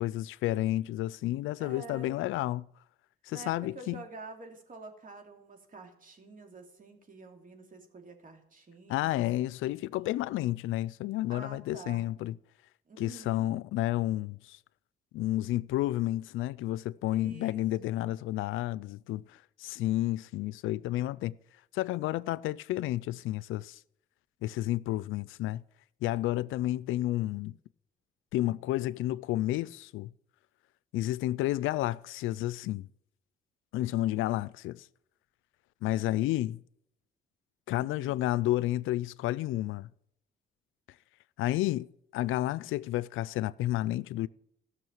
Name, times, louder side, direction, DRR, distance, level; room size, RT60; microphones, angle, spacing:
voice 1, 0.0-2.6 3.2-4.0 8.9-12.3 13.0-14.6 15.1-21.4 21.7-23.8 24.4-25.6 26.0-27.6 28.3-30.1 30.9-32.9 33.7-34.9 35.8-36.6 37.7-39.9 41.4-41.9 42.1-44.3, left 15 dB, 85° left, 0.4 m, -31 dB
voice 2, 1.6-2.2 3.3-9.2 11.3-12.0 12.9-13.5 17.1-18.0 37.7-38.2, right 3 dB, 45° right, 2.7 m, -48 dB
14.0 x 6.4 x 7.2 m
cardioid pair, 90°, 20 cm